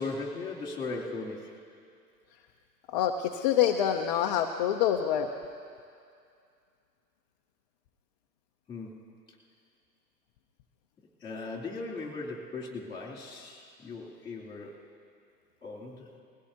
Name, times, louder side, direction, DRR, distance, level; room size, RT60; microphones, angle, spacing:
voice 1, 0.0-1.5 8.7-9.0 11.2-14.8 15.6-16.1, left 3 dB, 10° left, -3 dB, 2.8 m, -38 dB
voice 2, 2.9-5.3, left 10 dB, 30° left, 3 dB, 0.5 m, -26 dB
21.5 x 16.5 x 2.8 m, 2.4 s
hypercardioid pair, 115°, 50 cm